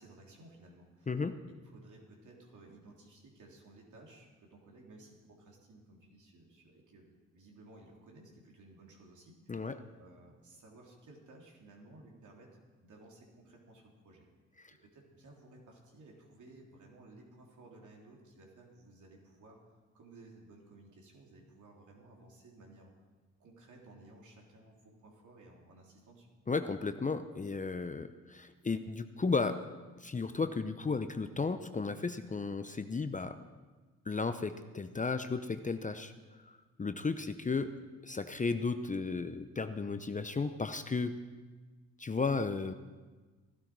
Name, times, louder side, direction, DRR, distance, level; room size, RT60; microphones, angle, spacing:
voice 1, 0.0-1.1 1.4-14.3 14.7-22.9 23.4-26.3 37.8-37.9, right 2 dB, 60° right, -1 dB, 3.6 m, -57 dB
voice 2, 1.1-1.4 9.5-9.8 14.6-14.7 26.5-29.6 30.0-33.4 34.1-36.1 36.4-37.7 38.0-41.1 42.0-42.7, left 4 dB, 20° left, 9 dB, 0.8 m, -34 dB
16.0 x 12.5 x 4.7 m, 1.3 s
hypercardioid pair, 55°, 34 cm